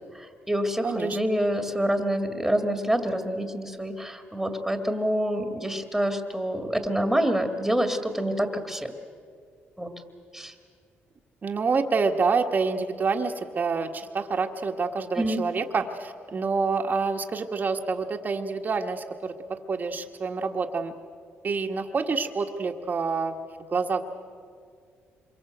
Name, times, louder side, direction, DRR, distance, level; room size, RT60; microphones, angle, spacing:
voice 1, 0.1-8.9 9.8-9.9 10.3-10.5 15.2-15.4, equal, 5° right, 5 dB, 2.3 m, -27 dB
voice 2, 0.8-1.2 11.4-20.9 21.4-23.4 23.7-24.1, right 4 dB, 40° right, 4 dB, 1.6 m, -27 dB
26.5 x 23.0 x 8.0 m, 2.1 s
cardioid pair, 90°, 5 cm